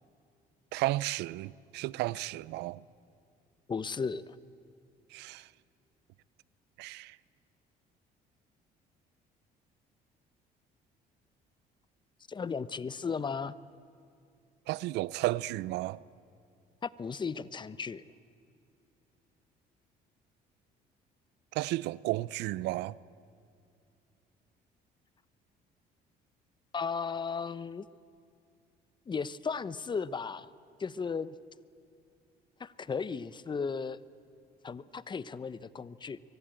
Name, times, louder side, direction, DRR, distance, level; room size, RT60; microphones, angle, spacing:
voice 1, 0.7-2.8 5.1-5.5 6.8-7.2 14.7-16.0 21.5-23.0, right 17 dB, 85° right, 0.6 m, -33 dB
voice 2, 3.7-4.3 12.3-13.5 16.8-18.0 26.7-27.9 29.1-30.5 30.8-31.4 32.6-34.0 34.6-36.2, left 5 dB, 25° left, 0.8 m, -35 dB
24.5 x 23.5 x 9.0 m
cardioid pair, 110°, 17 cm